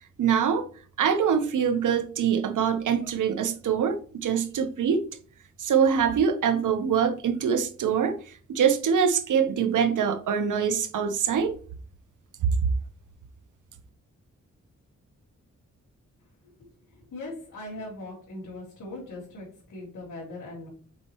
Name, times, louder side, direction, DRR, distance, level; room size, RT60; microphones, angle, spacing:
voice 1, 0.2-0.7 1.0-5.0 5.6-8.2 8.5-11.6 12.6-12.7, right 7 dB, 85° right, 0.9 m, -24 dB
voice 2, 17.1-20.7, left 2 dB, 80° left, 3.1 m, -39 dB
7.2 x 4.6 x 3.0 m
cardioid pair, 85°, 30 cm